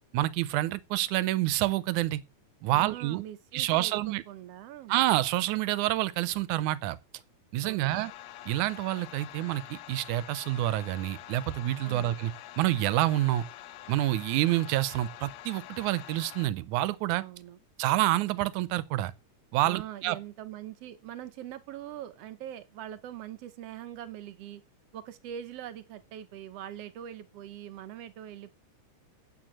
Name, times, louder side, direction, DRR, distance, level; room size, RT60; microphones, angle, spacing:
voice 1, 0.1-2.2 2.6-3.2 3.5-4.2 4.9-7.0 7.5-8.1 8.5-13.4 13.9-17.2 17.8-19.1 19.5-20.2, right 15 dB, 85° right, 2.1 m, -28 dB
voice 2, 2.7-4.9 7.6-8.0 11.8-12.1 17.2-17.6 19.6-24.6 24.9-28.6, right 11 dB, 70° right, 1.7 m, -42 dB
sound 1, 7.9-16.5, left 14 dB, 75° left, 1.8 m, -46 dB
9.0 x 6.8 x 7.4 m
omnidirectional pair, 3.4 m